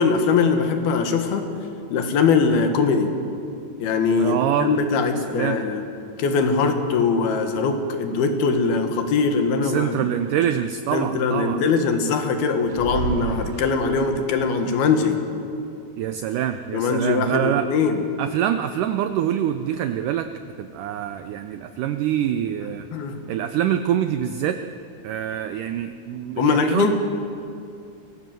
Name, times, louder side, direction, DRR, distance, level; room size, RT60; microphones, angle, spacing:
voice 1, 0.0-1.5 1.9-3.1 3.8-5.8 6.2-10.1 10.9-15.2 16.7-18.0 22.6-23.2 26.4-26.9, left 5 dB, 75° left, 6 dB, 3.5 m, -21 dB
voice 2, 4.2-4.7 5.3-5.6 9.6-11.6 16.0-17.7 18.2-20.3 20.6-22.9 23.3-24.6 25.0-26.9, right 10 dB, 90° right, 9 dB, 1.8 m, -25 dB
sound 1, 12.7-14.3, right 6 dB, 65° right, 2.0 m, -30 dB
23.5 x 18.0 x 7.7 m, 2.5 s
omnidirectional pair, 4.5 m